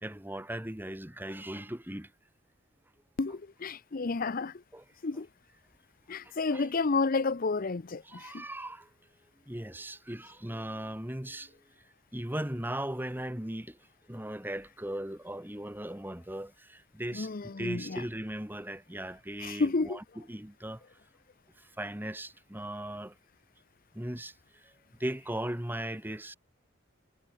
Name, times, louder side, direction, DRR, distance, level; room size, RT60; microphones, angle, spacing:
voice 1, 0.0-2.1 4.7-4.8 6.5-6.7 8.0-8.9 9.5-11.5 12.1-13.7 14.1-20.8 21.8-23.1 23.9-24.3 25.0-26.4, right 1 dB, 10° right, 2.0 m, -38 dB
voice 2, 3.2-4.5 5.0-5.3 6.1-8.4 17.1-18.0 19.4-20.0, left 3 dB, 45° left, 0.6 m, -31 dB
head